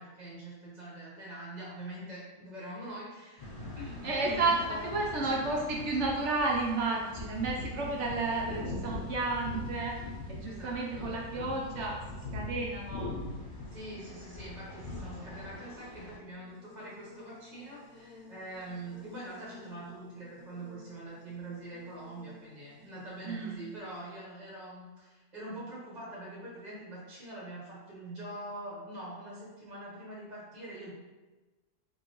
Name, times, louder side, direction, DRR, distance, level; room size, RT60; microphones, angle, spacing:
voice 1, 0.0-3.5 3.8-5.3 10.4-11.1 13.7-30.9, right 1 dB, 35° right, -6 dB, 0.9 m, -44 dB
sound 1, 3.4-16.2, left 2 dB, 45° left, 0.7 m, -42 dB
voice 2, 4.0-10.0 10.3-12.0 12.3-13.1 23.2-23.5, right 3 dB, 65° right, -1 dB, 0.7 m, -32 dB
Buzz, 16.1-24.2, left 4 dB, 70° left, 1.1 m, -54 dB
5.2 x 2.7 x 2.9 m, 1.2 s
omnidirectional pair, 1.7 m